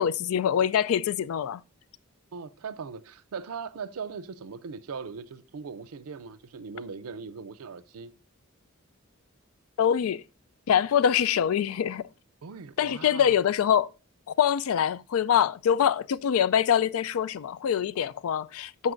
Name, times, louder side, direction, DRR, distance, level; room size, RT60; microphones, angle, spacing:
voice 1, 0.0-1.6 9.8-10.2 10.7-12.1 12.8-13.9 14.4-18.9, left 8 dB, 70° left, 0.3 m, -24 dB
voice 2, 2.3-8.1 12.4-13.3, right 5 dB, 80° right, 0.5 m, -39 dB
14.0 x 5.3 x 2.5 m
head